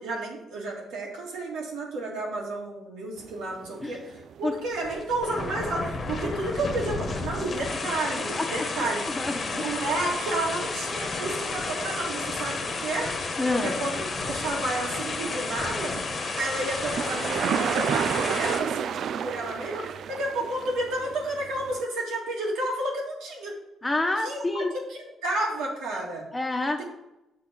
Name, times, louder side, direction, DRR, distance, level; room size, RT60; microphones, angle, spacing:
voice 1, 0.0-9.0 9.5-15.9 16.4-23.6 24.2-24.6 24.9-26.3 26.8-26.9, right 2 dB, 90° right, -1 dB, 2.2 m, -31 dB
sound 1, 3.2-21.8, right 8 dB, 65° right, 0.4 m, -35 dB
sound 2, 4.7-18.6, left 3 dB, 45° left, 1.2 m, -32 dB
voice 2, 8.3-8.7 9.1-9.7 13.4-13.8 23.8-24.7 26.3-26.8, left 2 dB, 15° left, 4 dB, 1.1 m, -28 dB
6.8 x 4.4 x 6.8 m, 0.91 s
cardioid pair, 90°, 0 cm